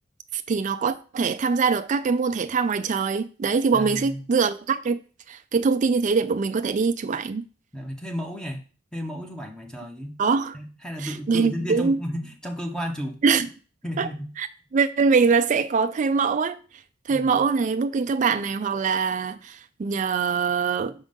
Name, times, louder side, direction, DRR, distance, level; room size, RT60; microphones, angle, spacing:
voice 1, 0.3-5.0 5.3-7.4 10.2-10.6 11.0-12.0 13.2-13.5 14.0-14.1 14.4-14.5 14.7-16.6 17.1-20.9, right 5 dB, 40° right, 0.4 m, -23 dB
voice 2, 3.7-4.2 7.7-8.6 8.9-10.2 10.5-13.2 13.8-14.3 17.1-17.3, equal, 5° left, 0.8 m, -33 dB
6.3 x 3.6 x 5.3 m
head